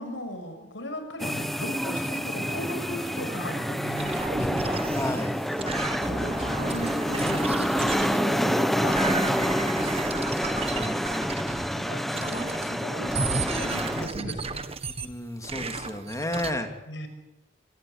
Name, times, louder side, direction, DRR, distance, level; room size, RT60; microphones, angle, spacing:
voice 1, 0.0-4.8 6.0-10.0 11.7-14.6 16.9-17.1, equal, 70° left, 7 dB, 6.2 m, -37 dB
sound 1, 1.2-14.1, equal, ahead, 1.2 m, -28 dB
sound 2, 3.9-8.5 8.8-11.8 12.1-12.8 13.0-15.1 15.4-16.5, right 4 dB, 30° right, 1.5 m, -34 dB
voice 2, 4.9-5.3 10.7-11.0 15.0-16.7, left 1 dB, 15° left, 5 dB, 2.9 m, -32 dB
25.5 x 19.0 x 9.8 m, 0.92 s
head